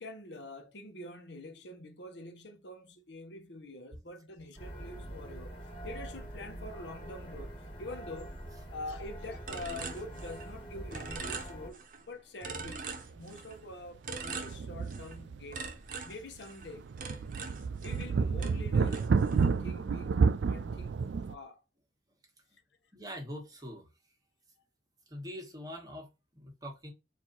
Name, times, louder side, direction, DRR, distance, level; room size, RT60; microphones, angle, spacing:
voice 1, 0.0-5.5 5.8-8.3 8.7-15.6 16.0-16.9 17.8-21.6, left 2 dB, 75° left, 1.0 m, -46 dB
sound 1, 4.6-11.7, right 1 dB, 30° left, 1.7 m, -44 dB
sound 2, 9.5-10.6 10.9-12.0 12.4-13.6 14.0-15.2 15.5-18.1 18.4-19.6, right 4 dB, 45° right, 0.8 m, -42 dB
sound 3, 12.7-12.8 13.2-13.3 14.2-15.6 16.0-16.1 16.6-21.4, right 5 dB, 75° right, 0.4 m, -30 dB
voice 2, 22.9-23.9 25.1-26.1 26.3-26.9, equal, 20° right, 1.3 m, -43 dB
4.6 x 2.7 x 3.9 m
head